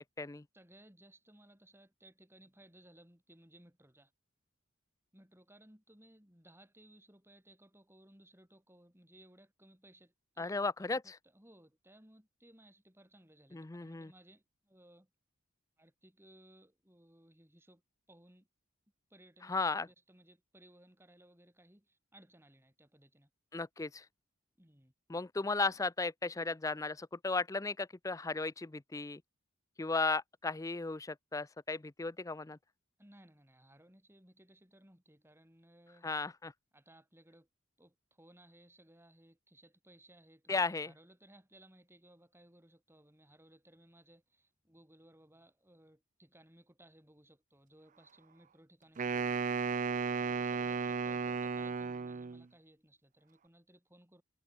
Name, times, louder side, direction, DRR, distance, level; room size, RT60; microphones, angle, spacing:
voice 1, 0.0-0.4 10.4-11.2 13.5-14.1 19.4-19.9 23.5-24.1 25.1-29.2 29.8-32.6 36.0-36.5 40.5-40.9, left 3 dB, 15° left, 0.4 m, -35 dB
voice 2, 0.5-4.1 5.1-15.1 15.8-17.8 18.1-18.5 19.1-23.3 24.6-24.9 33.0-36.1 36.7-37.5 37.8-54.2, right 1 dB, 10° right, 6.8 m, -62 dB
Wind instrument woodwind instrument, 49.0-52.4, right 5 dB, 40° right, 0.4 m, -34 dB
head